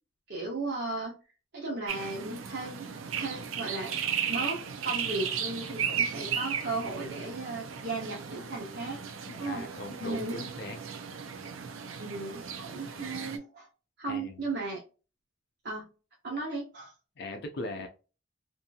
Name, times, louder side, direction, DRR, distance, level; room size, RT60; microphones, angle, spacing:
voice 1, 0.3-1.1 1.5-2.9 3.1-3.9 4.2-9.0 9.4-9.7 10.0-10.4 12.0-13.7 14.0-14.8 15.6-15.9 16.2-16.9, right 2 dB, 55° right, 0.8 m, -35 dB
sound 1, 1.9-13.4, right 7 dB, 85° right, 0.5 m, -35 dB
voice 2, 9.3-10.8 14.1-14.4 17.2-17.9, left 2 dB, 55° left, 0.5 m, -39 dB
2.7 x 2.6 x 2.3 m
head